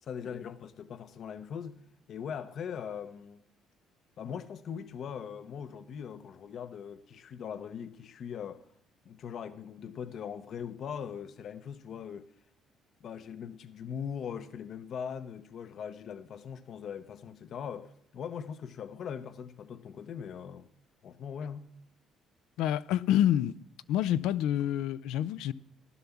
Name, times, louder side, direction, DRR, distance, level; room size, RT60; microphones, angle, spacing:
voice 1, 0.0-1.8 2.1-3.4 4.2-8.6 9.0-12.3 13.0-20.7 21.0-21.7, left 7 dB, 50° left, 0.8 m, -40 dB
voice 2, 22.6-23.5 23.9-25.5, left 11 dB, 85° left, 0.5 m, -27 dB
15.5 x 12.0 x 7.1 m
cardioid pair, 145°, 0 cm